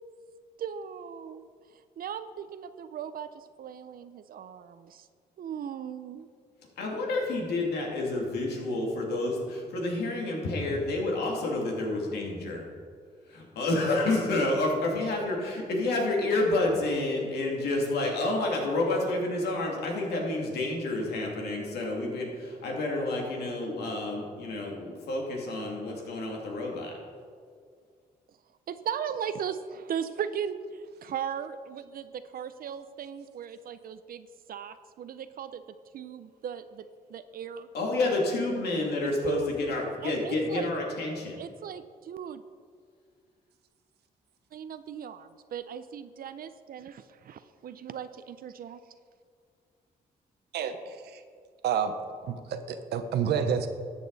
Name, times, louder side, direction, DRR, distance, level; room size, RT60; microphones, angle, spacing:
voice 1, 0.6-5.1 5.4-6.3 22.0-22.1 28.7-35.6 35.9-37.7 39.3-39.5 40.0-40.7 41.4-42.4 44.5-48.8, right 8 dB, 65° right, 11 dB, 0.5 m, -38 dB
voice 2, 6.8-12.6 13.3-26.9 37.7-41.4, left 2 dB, 85° left, -1 dB, 2.5 m, -29 dB
voice 3, 50.5-51.2 51.6-51.9 52.2-53.7, right 7 dB, 90° right, 8 dB, 0.9 m, -29 dB
13.5 x 8.3 x 4.1 m, 2.1 s
cardioid pair, 90°, 16 cm